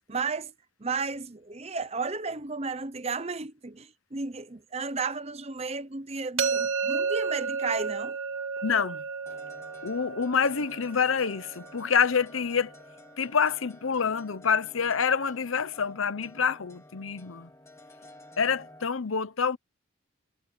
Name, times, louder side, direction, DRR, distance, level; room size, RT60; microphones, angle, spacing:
voice 1, 0.1-0.5 0.8-8.2 8.6-8.7, right 4 dB, 30° right, 0.9 m, -33 dB
sound 1, 6.4-12.2, right 5 dB, 85° right, 2.4 m, -32 dB
voice 2, 8.6-9.0 9.8-12.7 13.2-17.5 18.4-19.6, left 6 dB, 90° left, 0.9 m, -27 dB
sound 2, 9.3-18.9, left 1 dB, 15° left, 2.3 m, -52 dB
head